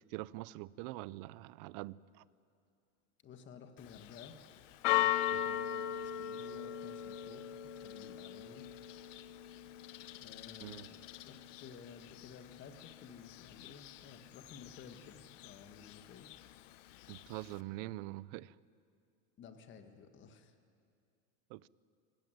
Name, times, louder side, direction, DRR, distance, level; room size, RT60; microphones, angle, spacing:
voice 1, 0.0-2.2 5.3-5.4 10.6-10.9 17.1-18.5 21.5-21.7, right 18 dB, 55° right, 21 dB, 0.6 m, -44 dB
voice 2, 3.2-4.4 4.9-8.7 10.2-11.0 11.2-16.3 19.4-20.5, left 6 dB, 30° left, 7 dB, 1.7 m, -54 dB
Church bell, 3.8-17.6, left 12 dB, 80° left, 1.0 m, -40 dB
26.0 x 15.0 x 9.2 m, 2.4 s
supercardioid pair, 145°, 36 cm